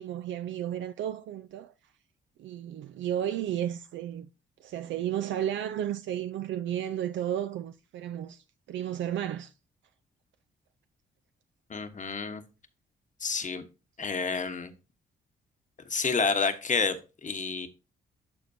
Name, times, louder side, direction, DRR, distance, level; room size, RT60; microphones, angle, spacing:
voice 1, 0.0-1.7 2.4-4.3 4.6-9.5, right 10 dB, 65° right, 0.4 m, -33 dB
voice 2, 11.7-12.4 13.2-13.6 14.0-14.7 15.9-17.7, left 5 dB, 35° left, 1.1 m, -29 dB
12.5 x 4.3 x 2.7 m
supercardioid pair, 55°, 21 cm